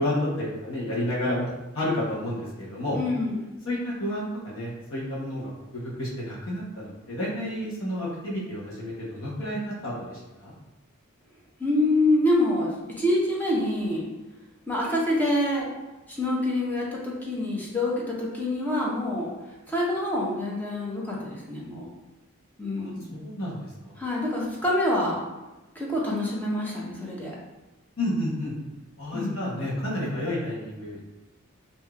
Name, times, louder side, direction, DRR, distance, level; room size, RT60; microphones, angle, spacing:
voice 1, 0.0-1.5 1.7-3.0 3.6-10.1 10.4-10.5 22.8-24.0 28.0-28.5 29.0-31.0, left 1 dB, 75° left, -6 dB, 1.0 m, -30 dB
voice 2, 2.9-3.4 11.6-14.1 14.7-15.7 16.2-19.3 19.7-21.9 22.6-23.1 24.0-25.2 25.7-27.3 29.1-29.4, left 1 dB, 10° left, -4 dB, 0.7 m, -26 dB
4.7 x 2.7 x 2.4 m, 1.1 s
head